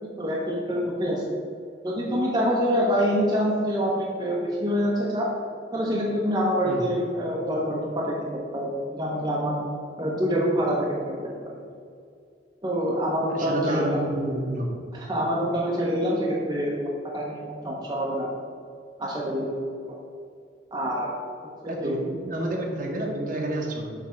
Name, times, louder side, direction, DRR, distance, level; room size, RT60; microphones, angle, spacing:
voice 1, 0.0-1.3 1.8-5.3 5.7-9.6 10.0-11.4 12.6-14.0 14.9-16.7 17.1-18.3 19.0-19.6 20.7-21.1 21.8-21.9, equal, 20° right, -4 dB, 0.7 m, -26 dB
voice 2, 13.3-14.8 21.7-23.9, right 1 dB, 50° right, -1 dB, 1.1 m, -29 dB
7.4 x 3.3 x 5.1 m, 2.3 s
head